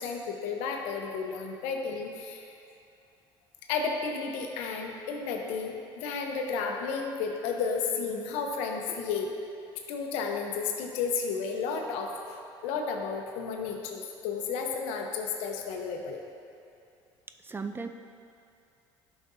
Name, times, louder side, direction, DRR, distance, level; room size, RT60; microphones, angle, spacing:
voice 1, 0.0-2.5 3.7-9.3 9.9-12.4 12.6-16.2, left 5 dB, 80° left, 2 dB, 0.8 m, -32 dB
voice 2, 17.3-17.9, right 4 dB, 20° right, 7 dB, 0.4 m, -37 dB
11.0 x 6.0 x 2.7 m, 2.5 s
supercardioid pair, 80°, 11 cm